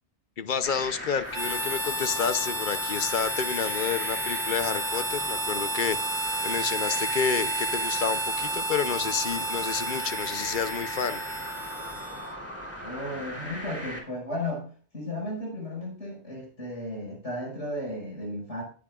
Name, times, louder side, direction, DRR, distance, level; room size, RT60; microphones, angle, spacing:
voice 1, 0.4-6.0 6.4-11.2, left 6 dB, 55° left, 13 dB, 0.8 m, -29 dB
sound 1, 0.6-14.0, equal, 10° left, 3.1 m, -38 dB
Harmonica, 1.3-12.4, right 1 dB, 20° right, 1.9 m, -31 dB
voice 2, 12.8-18.6, left 1 dB, 85° left, -1 dB, 5.7 m, -34 dB
19.0 x 7.5 x 2.4 m, 0.42 s
omnidirectional pair, 1.2 m